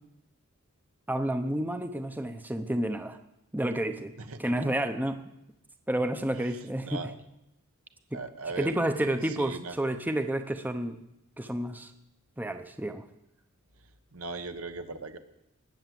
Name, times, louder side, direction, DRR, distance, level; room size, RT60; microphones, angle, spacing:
voice 1, 1.1-3.2 3.5-4.1 4.4-5.2 5.9-7.0 8.1-8.2 8.6-11.0 11.4-11.9 12.4-13.0, right 1 dB, 10° right, 7 dB, 0.7 m, -30 dB
voice 2, 4.2-4.5 6.4-6.6 6.8-7.2 8.1-9.8 14.1-15.2, right 3 dB, 70° right, 7 dB, 1.3 m, -39 dB
20.0 x 8.0 x 7.7 m, 0.86 s
head